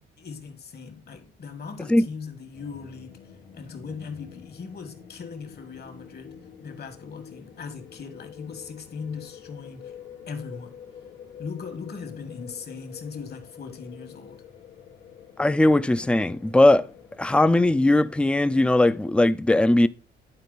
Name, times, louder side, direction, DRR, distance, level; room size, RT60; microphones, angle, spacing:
voice 1, 0.0-10.0 10.3-10.8 11.4-14.4, left 5 dB, 55° left, 1.7 m, -39 dB
sound 1, 2.5-18.8, left 8 dB, 90° left, 1.4 m, -47 dB
voice 2, 15.4-16.9 17.2-19.9, left 1 dB, 5° left, 0.4 m, -19 dB
10.5 x 4.5 x 4.0 m
cardioid pair, 90°, 20 cm